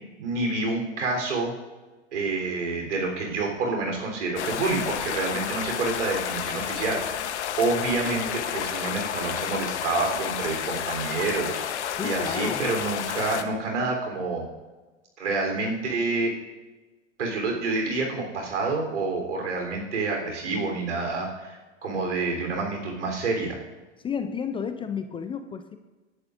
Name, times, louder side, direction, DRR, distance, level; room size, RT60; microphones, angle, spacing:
voice 1, 0.2-1.5 2.1-14.5 15.2-16.3 17.2-23.6, right 3 dB, 80° right, 1 dB, 3.7 m, -28 dB
sound 1, 4.4-13.4, left 9 dB, 70° left, 1.1 m, -31 dB
voice 2, 12.0-12.6 24.0-25.8, left 6 dB, 15° left, 9 dB, 0.5 m, -31 dB
19.5 x 11.0 x 2.6 m, 1.2 s
hypercardioid pair, 105°, 36 cm